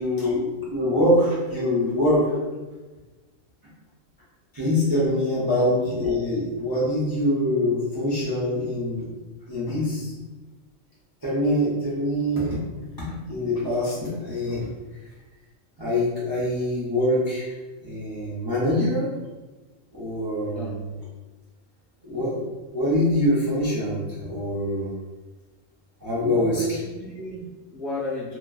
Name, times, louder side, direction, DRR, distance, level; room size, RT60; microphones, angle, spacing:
voice 1, 0.0-2.2 4.5-9.1 9.5-10.1 11.2-12.6 13.0-14.7 15.8-17.5 17.8-19.1 19.9-20.8 22.0-22.4 22.7-24.9 26.0-26.6, left 1 dB, 30° right, -9 dB, 0.4 m, -24 dB
voice 2, 26.2-28.4, equal, 45° left, -8 dB, 0.9 m, -33 dB
2.9 x 2.5 x 2.3 m, 1.2 s
omnidirectional pair, 1.4 m